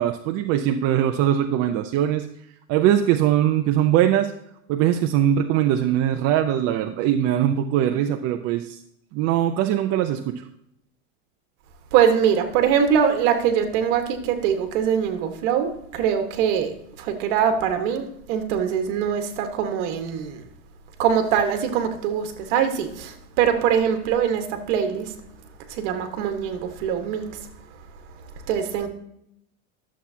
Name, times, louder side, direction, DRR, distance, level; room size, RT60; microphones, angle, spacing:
voice 1, 0.0-2.3 2.7-4.3 4.7-8.8 9.1-10.4, right 11 dB, 40° right, 0.5 m, -21 dB
voice 2, 11.9-20.5 21.0-25.1 25.7-27.4 28.5-28.9, right 8 dB, 60° right, 1.5 m, -23 dB
11.5 x 7.2 x 2.8 m
supercardioid pair, 135°, 39 cm